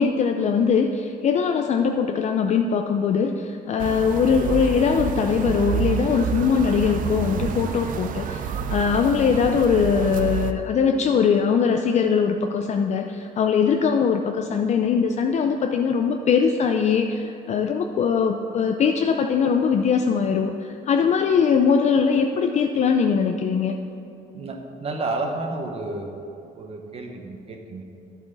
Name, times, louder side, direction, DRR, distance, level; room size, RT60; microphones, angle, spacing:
voice 1, 0.0-23.7, left 6 dB, 45° left, 5 dB, 0.5 m, -21 dB
sound 1, 3.8-10.5, right 8 dB, 55° right, 0.5 m, -28 dB
voice 2, 24.3-26.2 26.5-27.8, right 2 dB, 35° right, 3 dB, 1.1 m, -31 dB
10.5 x 7.2 x 3.9 m, 2.8 s
cardioid pair, 110°, 17 cm